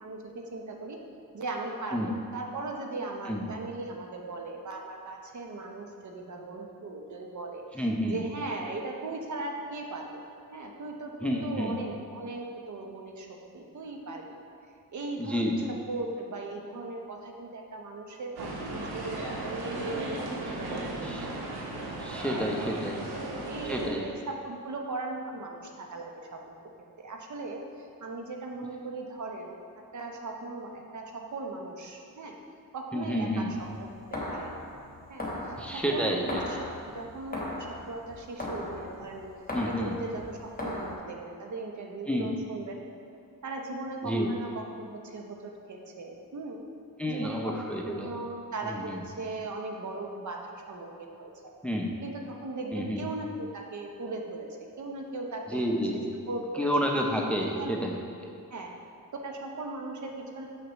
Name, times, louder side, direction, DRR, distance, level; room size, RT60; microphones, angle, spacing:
voice 1, 0.0-1.0 1.3-10.2 10.5-13.3 13.5-14.4 14.9-15.6 15.9-20.4 20.7-21.3 22.3-22.4 23.1-26.5 27.0-29.5 29.9-32.4 32.7-34.6 35.1-36.6 36.9-39.3 39.8-42.8 43.4-46.6 47.1-51.5 52.0-54.5 54.8-55.6 56.3-56.7 57.4-57.8 58.5-58.7 59.2-60.5, right 2 dB, 50° right, 1 dB, 0.8 m, -38 dB
voice 2, 7.8-8.2 11.2-11.8 15.2-15.7 21.0-21.3 22.0-23.0 23.6-24.1 32.9-33.5 35.6-36.2 39.5-40.0 42.1-42.3 44.0-44.3 47.0-48.1 48.6-49.0 51.6-51.9 52.7-53.0 55.5-56.1 56.6-58.0, equal, 5° left, 0 dB, 0.6 m, -30 dB
sound 1, 18.4-23.9, right 2 dB, 85° right, 0.9 m, -36 dB
sound 2, 33.5-40.9, left 1 dB, 25° left, 1.2 m, -38 dB
6.0 x 5.9 x 3.0 m, 2.5 s
cardioid pair, 60°, 38 cm